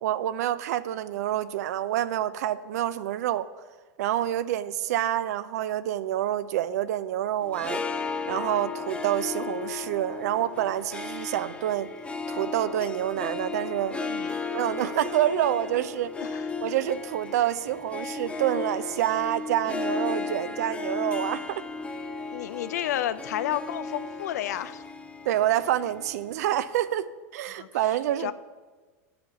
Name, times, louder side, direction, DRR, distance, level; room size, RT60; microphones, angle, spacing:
voice 1, 0.0-3.5 4.0-7.8 8.3-11.9 12.3-14.0 14.4-16.1 16.6-21.6 25.3-28.3, right 12 dB, 75° right, 14 dB, 0.4 m, -27 dB
Harp, 7.4-26.8, left 4 dB, 15° left, 0.6 m, -35 dB
voice 2, 14.0-14.4 16.2-16.5 22.3-24.8 27.5-27.7 28.2-28.3, left 11 dB, 80° left, 14 dB, 0.4 m, -31 dB
8.7 x 4.9 x 6.8 m, 1.3 s
hypercardioid pair, 115°, 9 cm